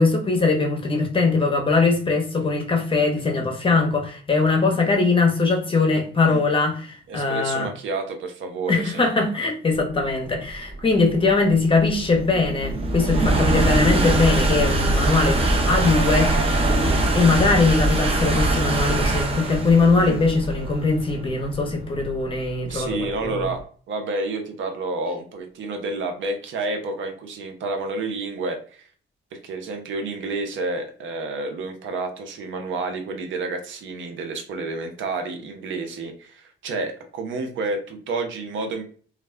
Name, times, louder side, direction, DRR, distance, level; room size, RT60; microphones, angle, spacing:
voice 1, 0.0-7.7 8.7-16.7 17.1-23.5, left 3 dB, 25° left, 0.7 m, -21 dB
voice 2, 7.1-9.1 20.0-20.2 22.7-28.9 29.3-38.8, right 3 dB, 75° right, 0.6 m, -30 dB
sound 1, 10.1-23.4, right 2 dB, 30° right, 0.6 m, -22 dB
2.3 x 2.1 x 3.2 m
cardioid pair, 90°, 20 cm